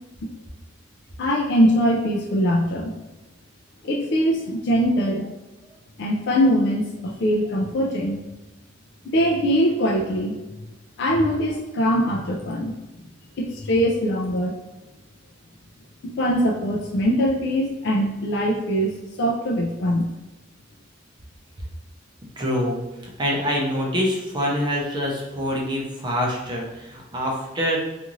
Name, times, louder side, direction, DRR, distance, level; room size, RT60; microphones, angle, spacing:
voice 1, 1.2-2.9 3.8-5.3 6.0-8.2 9.1-10.3 11.0-12.7 13.4-14.5 16.2-20.1, equal, 60° left, -1 dB, 0.4 m, -22 dB
voice 2, 22.4-27.8, equal, 25° right, -2 dB, 0.6 m, -25 dB
2.5 x 2.5 x 3.0 m, 1.1 s
head